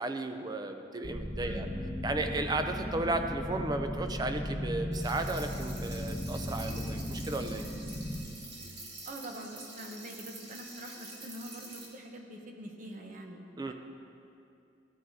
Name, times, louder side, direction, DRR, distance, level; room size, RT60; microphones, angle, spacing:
voice 1, 0.0-1.7 2.0-7.7 13.6-13.7, right 2 dB, 20° right, 7 dB, 0.5 m, -34 dB
sound 1, 1.0-8.2, equal, 35° left, 1.3 m, -36 dB
voice 2, 1.4-1.7 9.0-13.7, right 1 dB, 40° right, 3 dB, 0.9 m, -45 dB
sound 2, 4.9-11.9, right 2 dB, 60° right, 2.0 m, -47 dB
14.5 x 9.2 x 2.7 m, 2.6 s
head